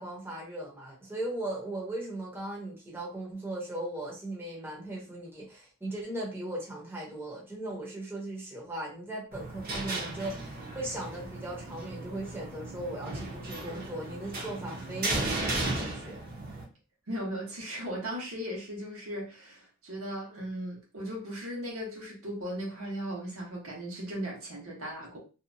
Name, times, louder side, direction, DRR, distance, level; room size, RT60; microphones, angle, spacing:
voice 1, 0.0-16.2, right 1 dB, 10° right, -4 dB, 0.7 m, -38 dB
sound 1, 9.3-16.6, right 2 dB, 45° right, 0.8 m, -35 dB
voice 2, 17.1-25.2, equal, 75° right, -2 dB, 1.1 m, -37 dB
2.7 x 2.2 x 2.6 m, 0.34 s
head